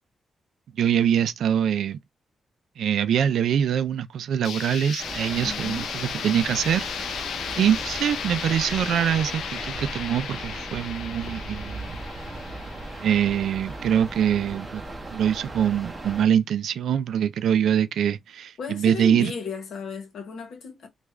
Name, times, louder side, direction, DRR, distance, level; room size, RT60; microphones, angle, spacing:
voice 1, 0.8-2.0 2.8-7.3 7.6-12.0 13.0-14.8 15.1-19.3, right 9 dB, 85° right, 0.3 m, -24 dB
sound 1, 4.4-14.2, left 8 dB, 85° left, 0.4 m, -35 dB
sound 2, 5.0-16.2, right 2 dB, 15° right, 0.7 m, -37 dB
voice 2, 5.4-5.9 7.6-7.7 18.6-20.9, left 5 dB, 70° left, 0.9 m, -34 dB
3.5 x 2.3 x 3.1 m
wide cardioid pair, 170°, 0 cm